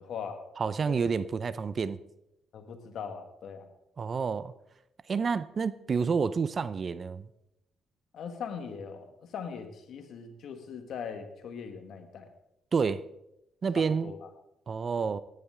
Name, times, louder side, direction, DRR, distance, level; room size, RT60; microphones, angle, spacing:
voice 1, 0.0-0.4 0.8-1.0 2.5-3.7 8.1-12.3 13.7-14.3, left 6 dB, 70° left, 6 dB, 1.7 m, -40 dB
voice 2, 0.6-2.0 4.0-4.5 5.1-7.3 12.7-13.0 13.6-14.1 14.7-15.2, right 5 dB, 45° right, 16 dB, 0.5 m, -29 dB
15.0 x 10.5 x 3.7 m, 0.85 s
cardioid pair, 90°, 0 cm